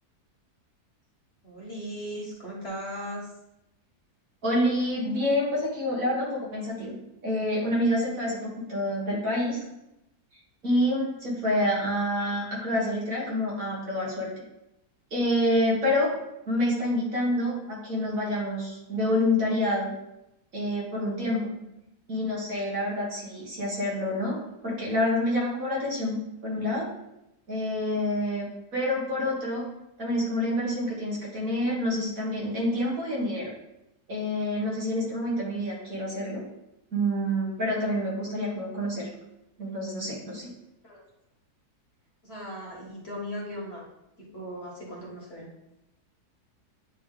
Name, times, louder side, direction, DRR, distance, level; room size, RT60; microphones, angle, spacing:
voice 1, 1.4-3.3 21.5-21.7 40.8-41.0 42.2-43.9 44.2-45.5, equal, 40° left, -3 dB, 1.4 m, -38 dB
voice 2, 4.4-7.0 7.2-9.6 10.6-14.3 15.1-16.1 16.5-19.9 20.5-21.5 22.1-24.4 24.6-26.2 26.4-26.9 27.5-28.5 28.7-29.6 30.0-33.5 34.1-36.4 36.9-39.1 39.6-40.5, left 1 dB, 60° right, -4 dB, 2.1 m, -27 dB
8.9 x 3.1 x 3.8 m, 0.88 s
omnidirectional pair, 1.7 m